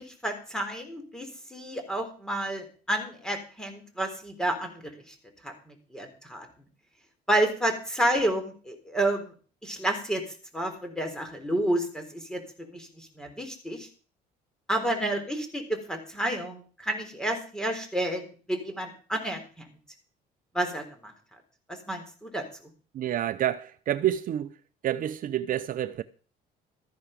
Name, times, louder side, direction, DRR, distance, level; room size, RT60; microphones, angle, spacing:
voice 1, 0.0-4.8 5.4-6.5 7.3-9.3 9.6-10.2 10.5-12.4 12.7-13.9 14.7-15.6 15.9-19.4 20.5-20.8 21.9-22.4, right 1 dB, 5° left, 3.7 m, -30 dB
voice 2, 22.9-24.5 24.8-26.0, right 12 dB, 55° right, 0.7 m, -28 dB
13.5 x 10.5 x 5.2 m
cardioid pair, 110°, 17 cm